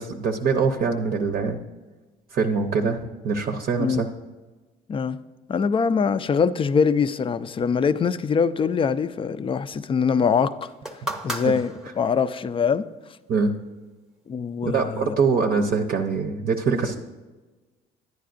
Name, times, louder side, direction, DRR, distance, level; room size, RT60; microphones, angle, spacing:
voice 1, 0.0-1.6 2.3-4.1 11.4-11.5 13.3-13.5 14.6-17.0, right 5 dB, 50° right, 4 dB, 0.7 m, -23 dB
voice 2, 5.5-10.7 11.2-12.8 14.3-15.2, left 6 dB, 30° left, 14 dB, 0.4 m, -23 dB
sound 1, 10.6-12.4 13.3-13.4, right 1 dB, ahead, 0.8 m, -34 dB
10.5 x 9.2 x 2.5 m, 1.2 s
supercardioid pair, 75°, 19 cm